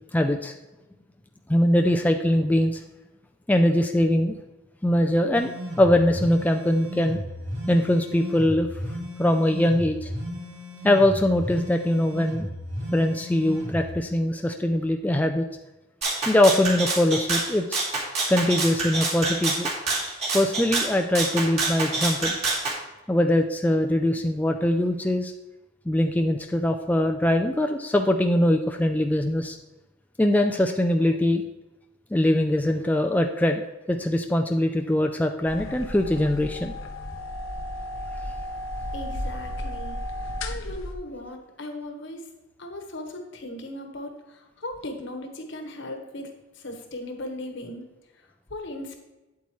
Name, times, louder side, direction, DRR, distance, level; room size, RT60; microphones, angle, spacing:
voice 1, 0.1-0.5 1.5-2.8 3.5-4.4 4.8-7.2 7.7-8.7 9.2-10.1 10.8-12.5 12.9-15.4 16.3-17.8 18.3-19.7 20.3-22.4 23.1-25.3 25.9-29.6 30.2-31.4 32.1-36.7, left 1 dB, 10° left, 4 dB, 0.4 m, -22 dB
sound 1, 5.3-13.9, equal, 75° right, 1.9 m, -35 dB
Rattle (instrument), 16.0-22.8, right 3 dB, 35° right, 2.2 m, -27 dB
sound 2, 35.4-40.9, left 1 dB, 90° left, 0.9 m, -34 dB
voice 2, 38.9-42.3 42.6-47.9 48.1-49.0, left 1 dB, 65° left, 4 dB, 1.3 m, -38 dB
8.4 x 8.2 x 3.1 m, 1.1 s
head